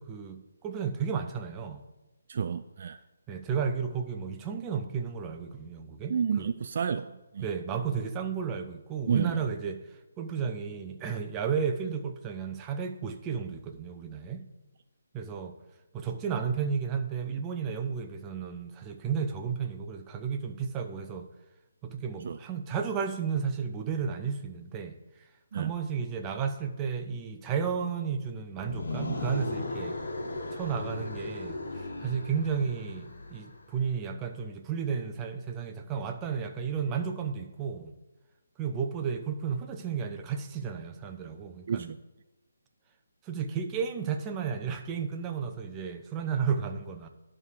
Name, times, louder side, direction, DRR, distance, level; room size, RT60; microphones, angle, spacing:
voice 1, 0.0-1.8 3.3-6.5 7.4-9.8 10.2-14.4 15.1-15.5 15.9-21.3 21.8-24.9 25.5-30.0 30.5-31.6 32.0-37.9 38.6-41.9 43.2-47.1, right 6 dB, 20° right, 5 dB, 0.7 m, -33 dB
voice 2, 2.3-3.0 6.1-7.5 9.1-9.4 22.2-22.4 25.5-25.7 41.7-42.0, right 7 dB, 50° right, 11 dB, 0.3 m, -30 dB
sound 1, 28.5-33.6, left 2 dB, 60° left, 1.8 m, -37 dB
11.0 x 3.7 x 6.5 m, 1.0 s
figure-of-eight pair, 150°, 0 cm